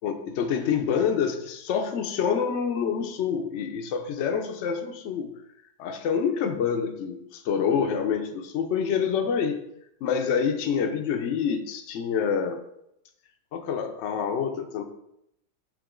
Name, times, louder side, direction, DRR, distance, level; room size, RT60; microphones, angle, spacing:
voice 1, 0.0-5.3 5.8-9.6 10.0-12.6 13.5-14.8, left 7 dB, 80° left, 5 dB, 0.6 m, -27 dB
5.0 x 2.9 x 3.6 m, 0.77 s
omnidirectional pair, 1.8 m